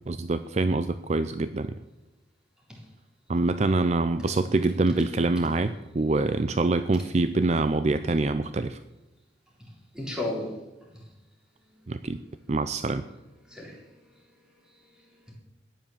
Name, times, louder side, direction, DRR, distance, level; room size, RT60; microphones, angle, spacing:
voice 1, 0.1-1.7 3.3-8.8 11.9-12.2 12.5-13.0, right 2 dB, 40° right, 12 dB, 0.5 m, -25 dB
voice 2, 9.9-10.5 13.4-14.4 14.7-15.3, left 1 dB, 5° right, -2 dB, 3.8 m, -36 dB
13.0 x 10.0 x 7.3 m, 1.0 s
head